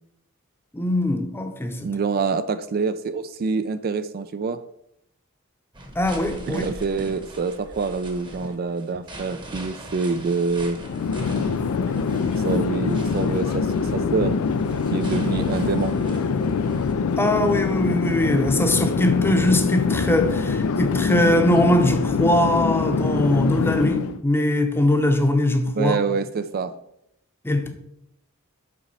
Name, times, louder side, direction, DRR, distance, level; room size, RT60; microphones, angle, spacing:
voice 1, 0.7-1.9 6.0-6.6 17.2-26.0 27.4-27.7, left 1 dB, 10° left, 0.7 m, -21 dB
voice 2, 1.8-4.6 6.5-10.8 12.4-14.3 14.9-16.0 25.7-26.7, right 4 dB, 45° right, 0.4 m, -26 dB
sound 1, 5.7-16.9, right 1 dB, 20° right, 1.0 m, -40 dB
Chatter / Fixed-wing aircraft airplane, 10.8-24.2, left 5 dB, 85° left, 0.4 m, -24 dB
7.6 x 5.0 x 4.2 m
head